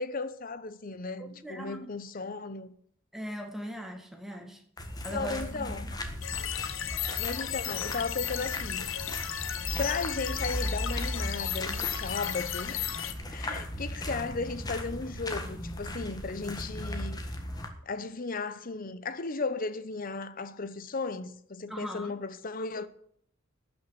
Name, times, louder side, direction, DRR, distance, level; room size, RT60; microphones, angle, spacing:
voice 1, 0.0-2.7 5.1-5.9 7.2-8.9 9.8-12.9 13.3-17.2 17.9-22.9, left 4 dB, 45° left, 0.8 m, -35 dB
voice 2, 1.2-1.9 3.1-4.6 5.0-6.0 13.5-13.8 21.7-22.2, equal, ahead, 1.8 m, -40 dB
sound 1, 4.8-17.7, left 1 dB, 20° left, 1.6 m, -37 dB
sound 2, 6.2-13.1, left 11 dB, 75° left, 0.9 m, -35 dB
12.0 x 6.2 x 9.2 m
head